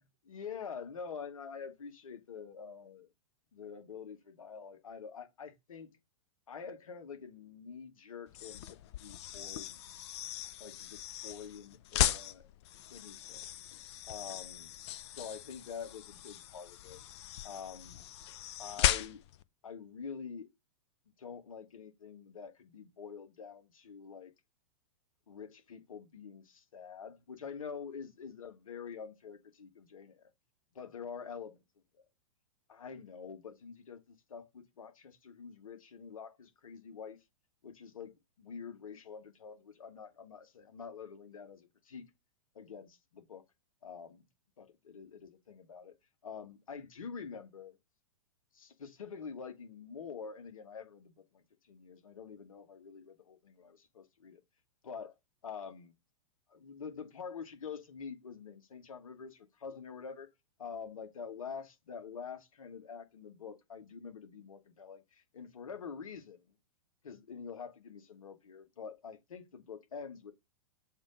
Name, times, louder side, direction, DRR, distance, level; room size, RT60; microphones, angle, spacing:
voice 1, 0.2-3.1 3.5-6.0 6.5-10.0 10.6-12.5 12.9-13.4 14.1-14.7 15.1-17.0 17.4-18.0 18.6-19.2 19.6-20.5 21.2-24.3 25.3-30.3 30.7-31.5 32.7-37.2 37.6-42.0 42.5-43.4 43.8-44.2 44.6-45.9 46.2-47.8 48.5-54.4 54.8-55.1 55.4-55.9 56.5-60.3 60.6-66.5 67.0-70.3, left 6 dB, 70° left, 1.5 m, -46 dB
sound 1, 8.3-19.4, left 12 dB, 50° left, 0.6 m, -37 dB
7.3 x 2.9 x 5.0 m
figure-of-eight pair, 105°, 18 cm